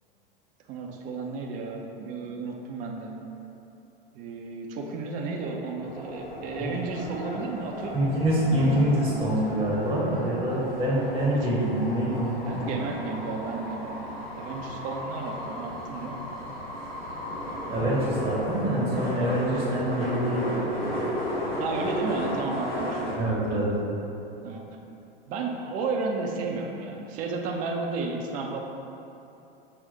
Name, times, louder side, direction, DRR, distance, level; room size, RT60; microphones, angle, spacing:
voice 1, 0.7-3.1 4.1-8.1 11.3-11.5 12.5-14.0 14.3-16.2 21.6-23.6 24.4-24.6 25.3-28.6, right 3 dB, 25° right, 0 dB, 0.4 m, -33 dB
sound 1, 5.8-23.1, equal, 85° left, 0.9 m, -35 dB
voice 2, 7.9-12.7 17.7-21.1 21.3-21.6 23.2-23.7, right 1 dB, 10° right, -6 dB, 0.8 m, -26 dB
6.1 x 2.1 x 4.2 m, 2.8 s
figure-of-eight pair, 90°, 29 cm